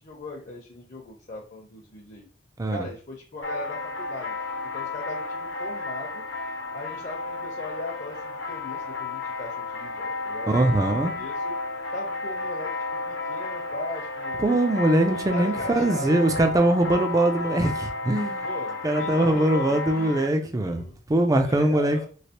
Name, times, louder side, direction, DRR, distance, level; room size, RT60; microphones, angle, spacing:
voice 1, 0.0-2.3 2.7-4.4 4.7-6.2 6.7-10.7 11.0-11.5 11.9-12.7 13.1-14.5 15.1-16.5 18.4-21.0 21.4-22.1, left 2 dB, 45° left, -2 dB, 0.7 m, -39 dB
sound 1, 3.4-20.3, left 3 dB, 80° left, 0.9 m, -32 dB
voice 2, 10.5-11.1 14.4-18.5 18.8-22.0, right 1 dB, 20° right, 5 dB, 0.4 m, -22 dB
3.2 x 2.9 x 2.9 m, 0.39 s
head